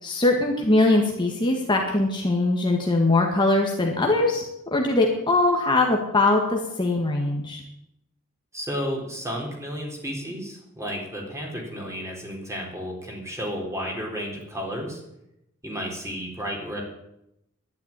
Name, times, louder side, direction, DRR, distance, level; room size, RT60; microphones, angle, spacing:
voice 1, 0.0-4.4 4.7-7.6, left 2 dB, 20° left, 0 dB, 1.8 m, -21 dB
voice 2, 8.5-15.0 15.6-16.8, equal, 15° right, 0 dB, 4.1 m, -32 dB
11.5 x 10.5 x 9.8 m, 0.84 s
head